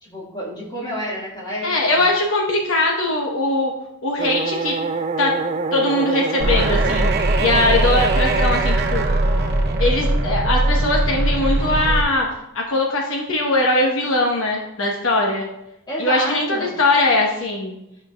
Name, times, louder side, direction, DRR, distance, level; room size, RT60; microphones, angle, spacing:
voice 1, 0.0-2.0 15.9-16.7, equal, 20° left, -4 dB, 1.8 m, -29 dB
voice 2, 1.6-3.7 4.0-4.7 5.2-5.3 5.7-7.1 7.4-9.0 9.8-12.3 12.5-15.5 16.0-17.7, left 2 dB, 60° left, -1 dB, 1.0 m, -20 dB
sound 1, 4.2-11.1, right 4 dB, 30° right, 0.3 m, -26 dB
sound 2, 6.4-12.0, right 1 dB, 50° right, 0.8 m, -20 dB
11.5 x 5.5 x 2.3 m, 0.85 s
head